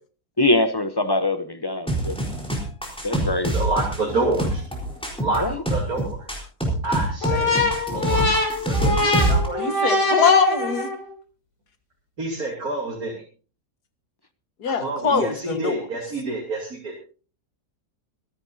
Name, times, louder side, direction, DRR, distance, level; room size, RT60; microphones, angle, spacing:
voice 1, 0.4-2.2 3.0-3.5 5.4-5.6, left 2 dB, 25° left, 0.5 m, -23 dB
sound 1, 1.9-9.5, right 1 dB, 5° left, 4.0 m, -25 dB
voice 2, 3.5-4.6 5.2-5.4 5.7-6.3 6.8-8.4 8.7-9.9 12.2-13.1 14.6-16.9, right 2 dB, 65° right, 3.4 m, -28 dB
sound 2, 7.2-11.1, left 2 dB, 50° left, 3.6 m, -23 dB
voice 3, 9.6-10.9 14.6-15.9, left 6 dB, 80° left, 2.0 m, -22 dB
25.0 x 10.5 x 2.7 m
omnidirectional pair, 1.7 m